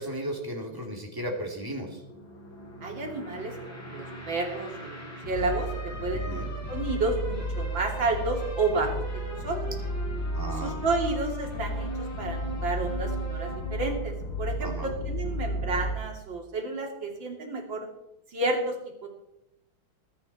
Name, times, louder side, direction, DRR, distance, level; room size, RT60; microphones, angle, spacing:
voice 1, 0.0-2.0 6.1-6.5 10.3-10.8 14.6-14.9, equal, 10° right, 0 dB, 2.7 m, -35 dB
sound 1, 0.8-15.9, equal, 60° left, 5.6 m, -34 dB
voice 2, 2.8-5.7 6.0-9.7 10.5-14.1 14.4-17.9 18.3-18.8 19.0-19.1, right 3 dB, 65° right, 1 dB, 3.6 m, -31 dB
21.0 x 10.0 x 4.3 m, 0.87 s
omnidirectional pair, 2.2 m